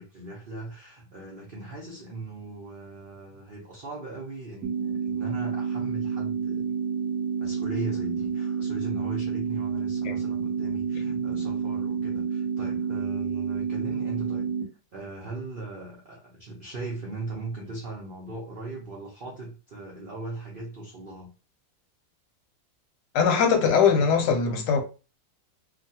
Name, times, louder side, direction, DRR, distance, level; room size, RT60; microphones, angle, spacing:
voice 1, 0.0-6.7 7.4-14.5 14.9-21.3, right 2 dB, 85° right, 0.4 m, -39 dB
sound 1, 4.6-14.6, right 6 dB, 65° right, 1.2 m, -29 dB
voice 2, 23.1-24.8, left 6 dB, 75° left, 1.1 m, -21 dB
2.9 x 2.3 x 2.7 m
omnidirectional pair, 2.0 m